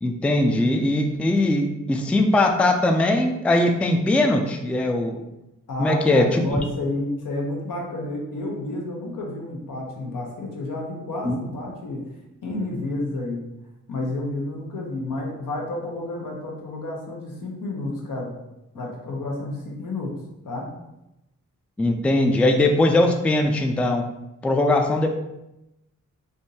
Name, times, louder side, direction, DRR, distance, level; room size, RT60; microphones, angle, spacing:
voice 1, 0.0-5.2 5.8-6.6 11.2-11.4 21.8-24.0 24.4-25.1, left 2 dB, 5° left, 4 dB, 0.3 m, -20 dB
voice 2, 5.7-12.0 12.4-13.4 13.9-18.3 18.7-20.1 20.4-20.7, left 2 dB, 75° left, -1 dB, 0.9 m, -30 dB
3.5 x 2.6 x 2.7 m, 0.91 s
cardioid pair, 60°, 32 cm